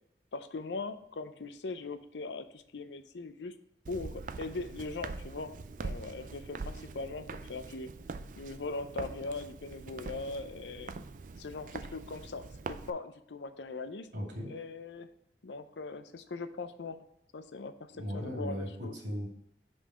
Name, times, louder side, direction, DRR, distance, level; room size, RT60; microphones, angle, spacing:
voice 1, 0.3-3.5 3.9-7.9 8.4-10.9 11.4-14.1 14.5-15.1 15.4-17.1 17.3-19.0, left 3 dB, 85° left, 11 dB, 0.6 m, -40 dB
Walk footsteps, 3.9-12.9, right 3 dB, 50° right, 0.4 m, -43 dB
voice 2, 14.1-14.5 17.9-19.3, equal, 85° right, -1 dB, 2.4 m, -37 dB
5.5 x 5.2 x 4.9 m, 0.79 s
head